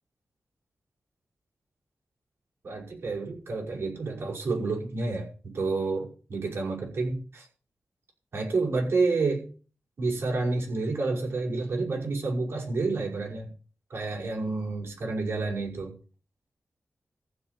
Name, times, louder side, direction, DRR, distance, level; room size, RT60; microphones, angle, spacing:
voice 1, 2.6-7.5 8.3-9.4 10.0-13.5 13.9-15.9, right 3 dB, 70° right, -1 dB, 6.1 m, -29 dB
15.0 x 5.2 x 9.4 m, 0.39 s
wide cardioid pair, 75°, 4 cm